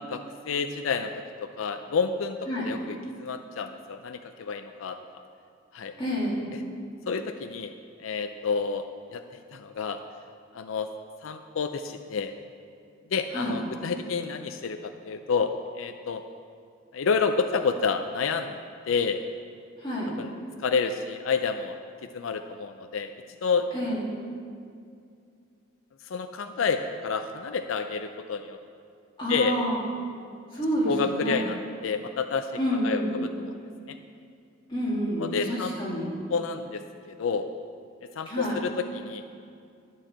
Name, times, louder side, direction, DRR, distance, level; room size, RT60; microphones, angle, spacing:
voice 1, 0.1-1.1 1.4-2.4 2.6-5.0 5.7-5.9 7.1-7.7 8.0-9.2 9.5-10.0 10.5-10.9 11.2-12.3 13.1-16.2 16.9-18.6 18.9-19.2 20.2-20.3 20.6-21.8 22.1-23.1 23.4-23.7 26.1-28.6 29.3-29.6 30.8-32.5 32.8-33.5 33.9-34.0 35.2-35.8 36.3-37.5 38.2-39.2, left 5 dB, 90° left, 8 dB, 0.4 m, -29 dB
voice 2, 6.0-6.5 13.3-13.5 19.8-20.1 23.7-24.0 29.2-29.8 30.5-31.4 32.6-33.1 34.7-36.1 38.3-38.6, equal, 25° left, -7 dB, 2.5 m, -28 dB
11.5 x 4.6 x 7.2 m, 2.4 s
head